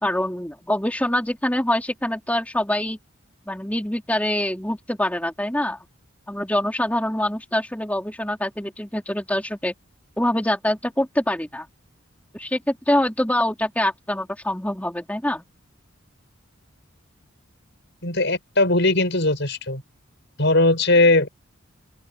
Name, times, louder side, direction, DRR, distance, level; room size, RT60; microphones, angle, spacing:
voice 1, 0.0-3.0 3.5-5.8 6.3-9.7 10.2-11.7 12.3-15.4, left 1 dB, 5° left, 3.7 m, -24 dB
voice 2, 18.0-19.8 20.4-21.3, left 2 dB, 55° left, 7.1 m, -19 dB
open air
head